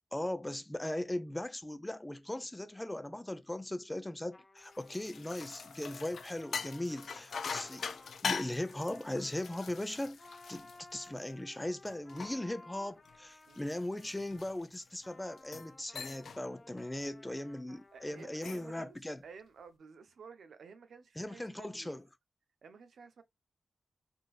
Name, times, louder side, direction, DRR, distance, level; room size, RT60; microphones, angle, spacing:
voice 1, 0.1-7.9 8.2-10.2 10.5-19.2 21.2-22.1, left 1 dB, 10° left, 0.4 m, -39 dB
Trumpet, 4.3-14.5 15.0-18.8, left 2 dB, 30° left, 0.9 m, -58 dB
sound 1, 4.6-11.4 11.9-14.9 15.4-15.7 16.0-16.4 16.8-17.1 18.2-18.8, left 5 dB, 75° left, 0.4 m, -42 dB
voice 2, 17.9-19.0 19.2-22.0 22.6-23.2, right 5 dB, 80° right, 0.7 m, -53 dB
3.7 x 2.6 x 2.4 m
wide cardioid pair, 95°, 0 cm